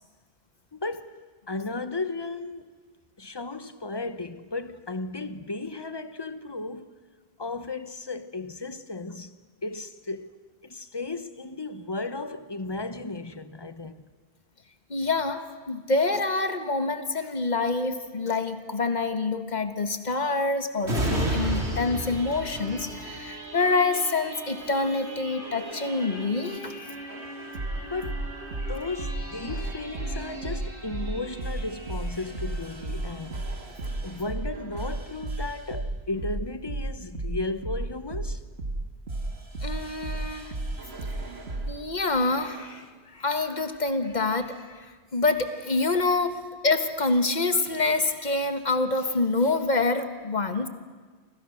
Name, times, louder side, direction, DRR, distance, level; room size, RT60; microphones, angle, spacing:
voice 1, 0.7-2.7 3.2-6.9 7.4-10.3 10.6-14.1 27.8-28.2 28.7-33.5 34.0-38.4, left 3 dB, 25° left, 1.0 m, -35 dB
voice 2, 14.9-26.7 39.6-40.5 41.7-50.7, left 3 dB, 40° left, 1.6 m, -26 dB
sound 1, 20.8-34.2 34.6-34.7, right 1 dB, 90° right, 4.6 m, -36 dB
sound 2, 25.4-26.4 27.1-41.8 42.4-42.8, right 2 dB, 70° right, 2.3 m, -34 dB
29.0 x 26.0 x 6.5 m
omnidirectional pair, 1.1 m